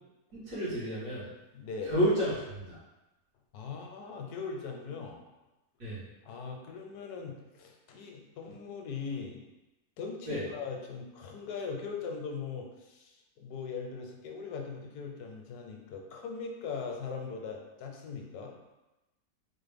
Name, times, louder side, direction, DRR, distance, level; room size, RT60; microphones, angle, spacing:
voice 1, 0.3-1.2 1.8-2.8 5.8-6.0 10.3-10.4, equal, 80° right, -11 dB, 2.1 m, -30 dB
voice 2, 1.5-2.0 3.5-5.2 6.2-9.4 10.0-18.5, left 5 dB, 80° left, 2 dB, 1.1 m, -40 dB
4.2 x 2.1 x 3.4 m, 1.0 s
omnidirectional pair, 1.6 m